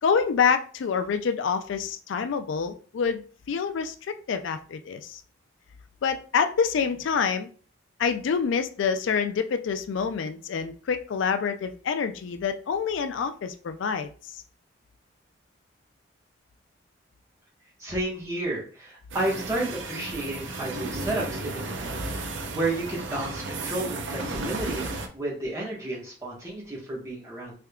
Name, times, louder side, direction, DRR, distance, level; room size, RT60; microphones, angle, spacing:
voice 1, 0.0-4.0 4.3-5.2 6.0-7.5 8.0-14.4, left 6 dB, 80° left, 9 dB, 0.4 m, -27 dB
voice 2, 17.8-22.0 22.5-27.5, right 2 dB, 15° right, -5 dB, 1.2 m, -31 dB
sound 1, 19.1-25.1, right 2 dB, 80° right, 0.6 m, -34 dB
3.6 x 3.4 x 2.3 m, 0.40 s
head